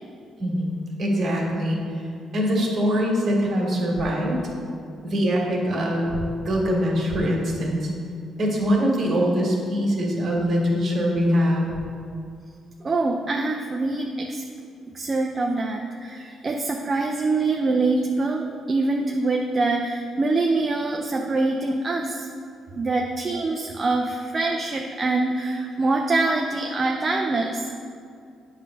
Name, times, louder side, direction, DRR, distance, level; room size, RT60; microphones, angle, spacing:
voice 1, 0.4-1.8 2.3-4.4 5.0-7.9 8.4-11.7, equal, 50° right, -2 dB, 1.9 m, -23 dB
voice 2, 12.8-14.4 14.9-22.3 22.8-27.7, right 3 dB, 35° right, 1 dB, 0.5 m, -24 dB
8.8 x 3.3 x 6.3 m, 2.4 s
cardioid pair, 90°, 0 cm